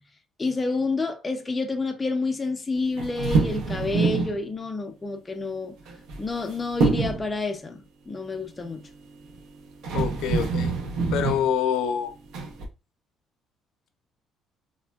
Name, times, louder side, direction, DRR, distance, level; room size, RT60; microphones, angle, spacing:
voice 1, 0.4-5.7 6.2-8.8, left 3 dB, 15° left, 0.4 m, -29 dB
sound 1, 3.0-4.4 5.9-6.5 6.8-7.3 9.3-9.4 9.8-11.5 12.3-12.7, right 4 dB, 70° right, 0.6 m, -25 dB
voice 2, 9.9-10.8 11.1-12.1, left 8 dB, 85° left, 0.4 m, -26 dB
3.3 x 2.1 x 2.2 m
cardioid pair, 150°, 0 cm